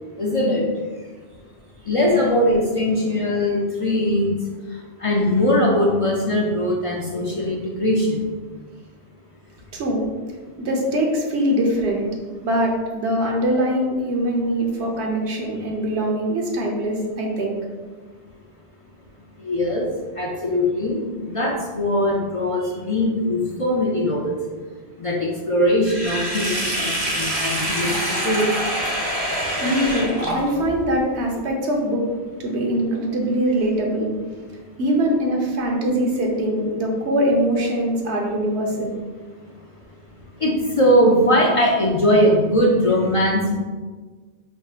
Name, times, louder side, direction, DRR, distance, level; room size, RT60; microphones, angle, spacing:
voice 1, 0.2-0.7 1.9-4.3 5.0-8.2 19.4-19.9 20.2-24.4 25.0-28.5 40.4-43.5, left 1 dB, 45° left, -3 dB, 0.4 m, -20 dB
voice 2, 9.7-10.0 10.6-12.0 12.4-17.6 29.6-32.1 32.4-34.1 34.8-38.9, right 1 dB, 90° right, 0 dB, 1.1 m, -22 dB
Sink (filling or washing), 25.8-30.8, right 1 dB, 35° right, 0.9 m, -25 dB
5.4 x 3.5 x 2.4 m, 1.4 s
omnidirectional pair, 1.1 m